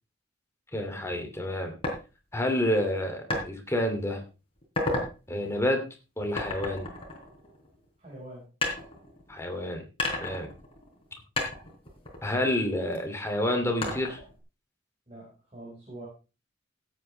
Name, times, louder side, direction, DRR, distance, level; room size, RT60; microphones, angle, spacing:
voice 1, 0.7-1.7 2.3-4.2 5.3-5.8 6.2-6.9 9.3-9.8 10.2-10.5 12.2-14.2, left 1 dB, 15° left, 4 dB, 2.6 m, -29 dB
sound 1, 1.8-2.0 3.3-3.5 4.0-4.2 4.6-5.1 6.4-7.8 8.6-9.5 10.0-11.1 11.4-13.0 13.8-14.4, left 2 dB, 30° left, 3.9 m, -32 dB
voice 2, 8.0-8.5 15.1-16.1, right 1 dB, 35° right, -5 dB, 5.2 m, -44 dB
16.5 x 8.8 x 3.4 m, 0.32 s
head